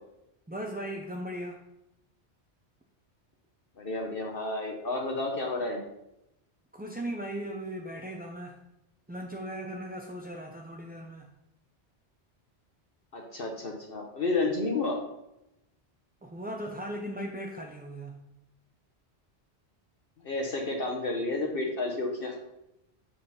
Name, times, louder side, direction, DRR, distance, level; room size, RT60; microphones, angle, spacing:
voice 1, 0.5-1.6 6.7-8.6 9.1-11.3 16.2-18.1, right 1 dB, 15° right, 0 dB, 0.4 m, -37 dB
voice 2, 3.8-5.8 13.1-15.0 20.2-22.3, left 2 dB, 55° left, 1 dB, 1.2 m, -31 dB
7.7 x 4.1 x 5.6 m, 0.86 s
omnidirectional pair, 1.1 m